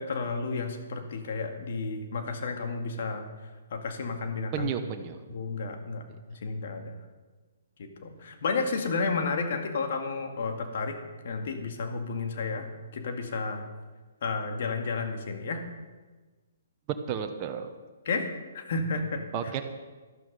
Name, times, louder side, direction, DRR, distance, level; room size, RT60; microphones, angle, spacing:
voice 1, 0.0-3.3 3.7-4.7 5.3-6.0 6.3-7.0 7.8-11.0 11.2-12.7 12.9-13.6 14.2-15.6 18.1-18.3 18.5-19.5, left 4 dB, 55° left, 4 dB, 2.1 m, -32 dB
voice 2, 4.5-5.2 16.9-17.7 19.3-19.6, right 8 dB, 30° right, 5 dB, 1.2 m, -32 dB
12.5 x 12.5 x 5.3 m, 1.3 s
figure-of-eight pair, 130°, 0 cm